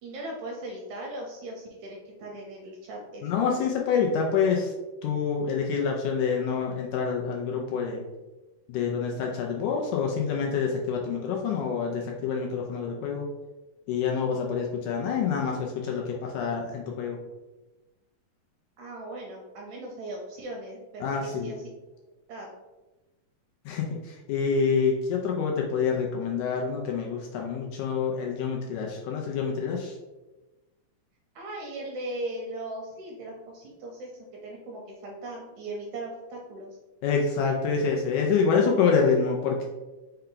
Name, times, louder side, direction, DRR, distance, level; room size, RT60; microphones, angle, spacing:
voice 1, 0.0-3.4 18.8-21.7 22.3-22.5 31.4-34.1 34.4-36.8, right 1 dB, 80° right, 0 dB, 1.7 m, -38 dB
voice 2, 3.2-4.7 5.0-8.0 8.7-13.3 13.9-17.2 21.0-21.5 23.7-30.0 37.0-39.7, left 6 dB, 80° left, 0 dB, 1.8 m, -27 dB
5.5 x 2.2 x 3.7 m, 1.1 s
omnidirectional pair, 3.8 m